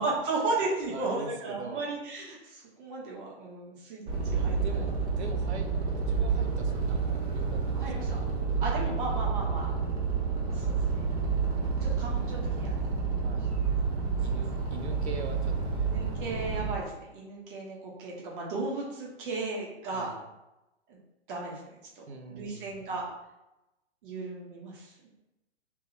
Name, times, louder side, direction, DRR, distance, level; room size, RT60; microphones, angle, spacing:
voice 1, 0.0-4.7 7.7-8.2 8.6-9.7 10.3-10.8 11.5-12.9 15.9-20.1 20.9-21.0 21.3-21.6 21.9-23.0 24.0-25.1, right 3 dB, 50° right, -4 dB, 1.5 m, -35 dB
voice 2, 0.9-1.8 4.6-8.1 13.2-13.5 14.2-15.9 19.9-20.3 22.1-22.8, right 4 dB, 75° right, 4 dB, 0.9 m, -43 dB
sound 1, 4.1-16.7, right 5 dB, 15° right, 0.5 m, -29 dB
3.8 x 3.0 x 4.1 m, 0.96 s
hypercardioid pair, 130°, 34 cm